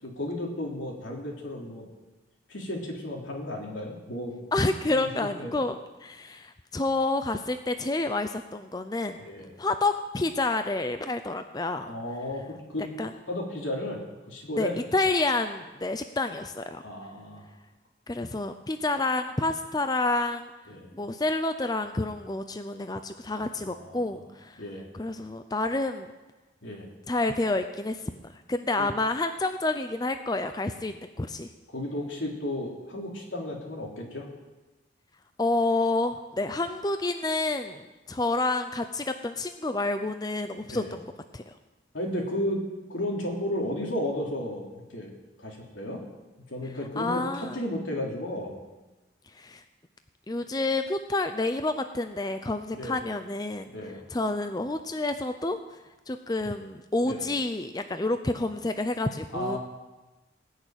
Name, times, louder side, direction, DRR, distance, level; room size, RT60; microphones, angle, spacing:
voice 1, 0.0-1.8 2.5-4.3 4.9-5.6 9.2-9.5 11.9-12.8 13.3-14.0 14.3-14.8 16.8-17.4 20.7-20.9 23.6-24.3 24.6-24.9 26.6-26.9 28.8-28.9 31.7-34.3 40.7-40.9 41.9-42.6 42.9-45.1 45.4-46.0 46.5-48.6 52.7-53.0 53.7-54.1 57.0-57.2 59.3-59.6, left 1 dB, 80° left, -1 dB, 3.5 m, -33 dB
voice 2, 4.5-5.8 6.0-9.2 9.6-11.9 13.0-13.1 14.6-16.8 18.1-20.5 20.9-24.6 24.9-26.1 27.1-28.2 28.5-31.5 35.4-41.0 41.3-41.5 47.0-47.6 49.4-49.6 50.3-53.7 54.1-55.6 56.1-59.6, left 2 dB, 20° left, 8 dB, 0.5 m, -29 dB
19.5 x 6.6 x 9.0 m, 1.1 s
head